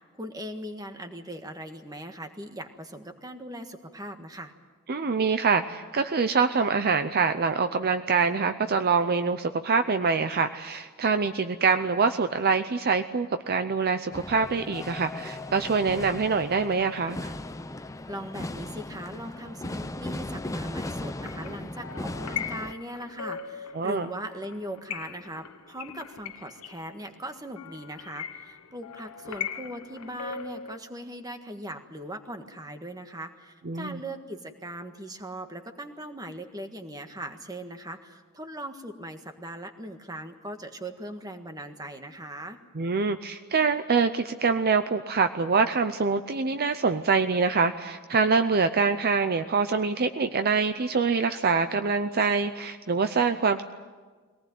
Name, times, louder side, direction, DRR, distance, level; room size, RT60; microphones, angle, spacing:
voice 1, 0.0-4.5 18.1-42.6, right 1 dB, 15° right, 6 dB, 1.6 m, -39 dB
voice 2, 4.9-17.3 23.7-24.1 33.7-34.0 42.8-53.6, right 5 dB, 45° right, 9 dB, 0.6 m, -25 dB
sound 1, 14.1-22.7, left 1 dB, 15° left, 0.6 m, -37 dB
sound 2, 21.0-30.8, left 7 dB, 85° left, 1.1 m, -40 dB
22.5 x 18.5 x 9.3 m, 1.4 s
head